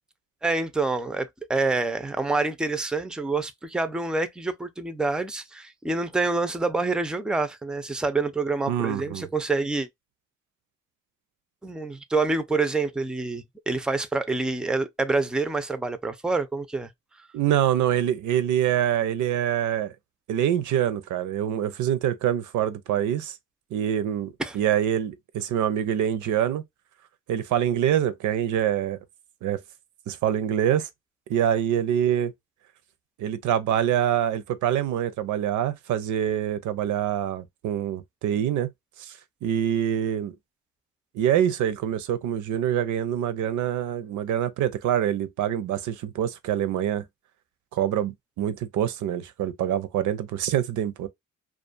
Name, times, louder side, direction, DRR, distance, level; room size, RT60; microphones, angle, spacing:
voice 1, 0.4-9.9 11.6-16.9 24.4-24.6, right 3 dB, 5° right, 0.4 m, -27 dB
voice 2, 8.7-9.3 17.3-19.9 20.3-23.3 23.7-26.6 27.3-29.0 29.4-29.6 30.1-30.9 31.3-32.3 33.2-38.7 39.0-39.1 39.4-40.3 41.1-47.0 47.7-51.1, right 10 dB, 75° right, 0.6 m, -25 dB
2.4 x 2.3 x 2.4 m
cardioid pair, 90°, 30 cm